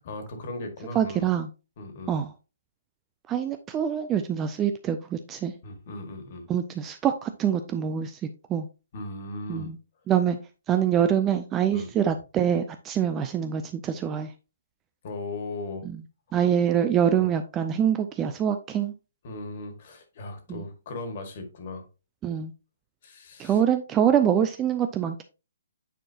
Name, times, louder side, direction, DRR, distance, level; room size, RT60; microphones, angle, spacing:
voice 1, 0.0-1.3 1.8-2.2 5.6-6.5 8.9-9.7 11.7-11.9 15.0-15.9 17.2-17.3 19.2-21.8 23.0-23.6, left 2 dB, 35° left, 1.8 m, -37 dB
voice 2, 0.9-1.5 2.1-2.3 3.3-5.5 6.5-8.2 8.5-8.7 9.5-9.8 10.1-10.4 10.7-14.3 15.9-16.0 16.3-18.9 20.5-20.6 22.2-22.5 23.4-25.2, right 9 dB, 10° right, 0.3 m, -25 dB
9.0 x 4.6 x 2.8 m
hypercardioid pair, 170°, 0 cm